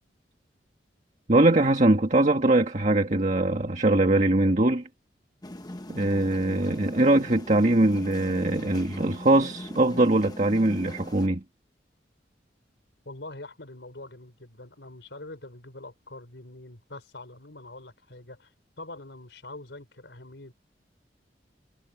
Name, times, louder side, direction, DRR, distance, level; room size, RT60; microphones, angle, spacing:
voice 1, 1.3-4.9 5.9-11.4, right 2 dB, 40° right, 1.7 m, -22 dB
sound 1, 5.4-11.3, left 1 dB, 25° left, 1.2 m, -41 dB
voice 2, 13.1-18.5 18.8-20.5, left 2 dB, 90° left, 4.0 m, -44 dB
head